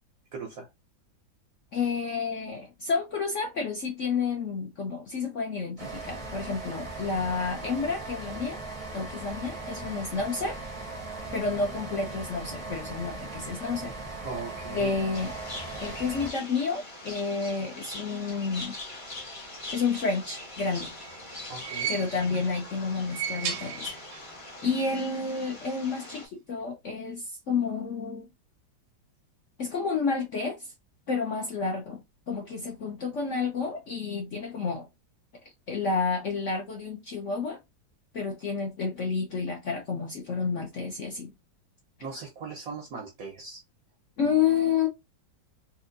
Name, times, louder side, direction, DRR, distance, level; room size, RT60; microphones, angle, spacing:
voice 1, 0.3-0.7 14.2-15.0 21.5-22.0 42.0-43.6, right 4 dB, 65° right, 0.9 m, -39 dB
voice 2, 1.7-8.6 8.9-10.6 11.3-13.9 14.7-15.3 15.8-18.8 19.7-20.9 21.9-24.0 24.6-28.3 29.6-30.7 31.1-32.0 32.3-34.9 35.7-37.6 38.1-41.3 44.2-44.9, left 5 dB, 55° left, 0.8 m, -30 dB
sound 1, 5.8-16.3, right 3 dB, 40° right, 0.5 m, -39 dB
sound 2, 15.1-26.3, left 2 dB, 20° left, 0.9 m, -42 dB
sound 3, 20.6-22.5 23.0-24.4 24.6-24.7 25.8-25.9, right 8 dB, 85° right, 1.4 m, -36 dB
4.4 x 2.3 x 2.5 m
omnidirectional pair, 2.1 m